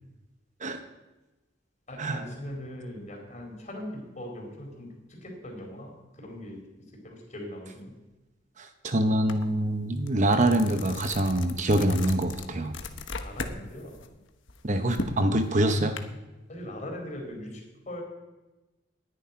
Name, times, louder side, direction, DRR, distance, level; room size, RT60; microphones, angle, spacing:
voice 1, 1.9-6.6 7.0-7.9 13.1-13.9 16.5-18.0, left 1 dB, 40° left, 1 dB, 4.3 m, -40 dB
voice 2, 8.6-12.7 14.6-15.9, right 1 dB, 40° right, 7 dB, 1.0 m, -25 dB
sound 1, 9.3-9.4 9.8-13.6 13.9-16.0, left 3 dB, 90° left, 1.2 m, -37 dB
10.5 x 9.9 x 9.9 m, 1.1 s
head